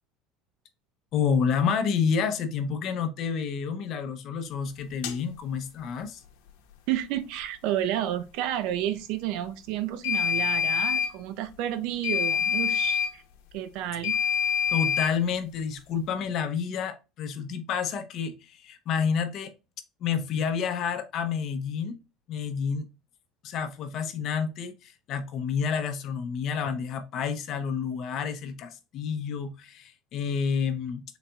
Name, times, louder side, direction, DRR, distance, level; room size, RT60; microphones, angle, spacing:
voice 1, 1.1-6.2 14.7-19.5 20.0-22.0 22.3-22.9 23.4-31.0, left 6 dB, 50° left, 0.7 m, -29 dB
sound 1, 5.0-5.2 10.0-11.1 12.0-13.1 14.0-15.1, left 7 dB, 85° left, 0.8 m, -26 dB
voice 2, 6.9-13.2 13.5-14.2, right 12 dB, 70° right, 0.5 m, -31 dB
4.0 x 3.9 x 2.2 m
cardioid pair, 130°, 0 cm